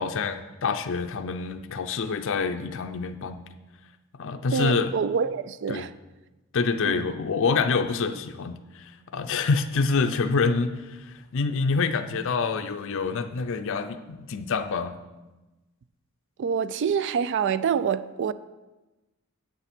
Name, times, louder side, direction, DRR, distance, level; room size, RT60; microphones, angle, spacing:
voice 1, 0.0-3.4 4.2-4.9 5.7-5.9 6.5-14.9, left 4 dB, 65° left, 8 dB, 0.5 m, -27 dB
voice 2, 4.5-5.9 6.8-7.0 16.4-18.3, right 6 dB, 55° right, 15 dB, 0.3 m, -26 dB
8.1 x 6.9 x 5.9 m, 1.1 s
head